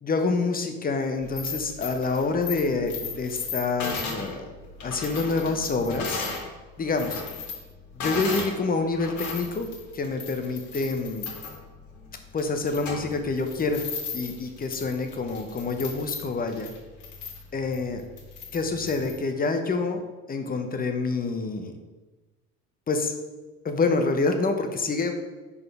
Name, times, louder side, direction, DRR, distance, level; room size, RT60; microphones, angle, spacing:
voice 1, 0.0-4.5 4.8-6.3 6.8-7.2 7.9-9.7 9.9-11.3 12.3-13.8 14.1-16.7 17.5-18.0 18.5-20.0 20.3-21.7 22.9-23.1 23.6-25.1, left 3 dB, 25° left, 6 dB, 0.9 m, -27 dB
sound 1, 1.2-6.5 6.8-8.6 8.9-19.2, left 4 dB, 55° left, 2.1 m, -36 dB
4.8 x 4.2 x 5.6 m, 1.2 s
supercardioid pair, 85°, 34 cm